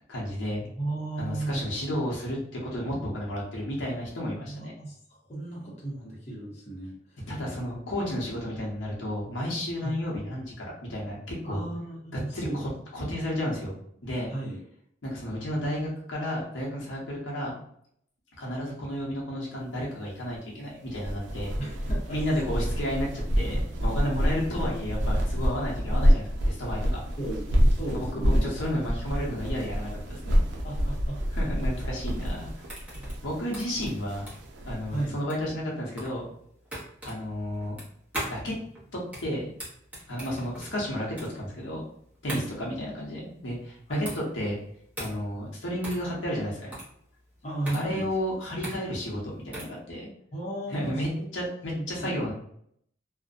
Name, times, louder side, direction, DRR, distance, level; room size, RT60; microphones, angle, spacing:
voice 1, 0.1-0.7 1.2-4.8 7.3-11.6 12.3-13.7 14.0-14.3 15.0-17.6 18.4-21.5 22.1-27.0 27.9-30.4 31.3-32.5 33.2-34.3 34.7-36.3 37.0-37.8 38.3-38.5 38.9-39.5 40.1-41.8 42.2-44.6 45.0-46.8 47.7-50.1 50.7-52.3, equal, 85° left, -3 dB, 0.8 m, -32 dB
voice 2, 0.6-1.6 4.4-5.0 5.3-7.2 9.8-10.0 11.4-12.6 14.3-14.6 21.6-22.2 24.0-24.3 27.2-28.5 30.6-31.2 32.0-32.1 34.9-35.2 42.3-42.5 43.9-44.1 47.4-48.1 50.3-51.2 51.8-52.2, right 2 dB, 35° left, -4 dB, 0.7 m, -35 dB
sound 1, 20.9-35.1, equal, 75° right, 0.4 m, -27 dB
sound 2, 32.0-49.8, equal, 10° right, 0.7 m, -41 dB
2.5 x 2.0 x 2.4 m, 0.68 s
head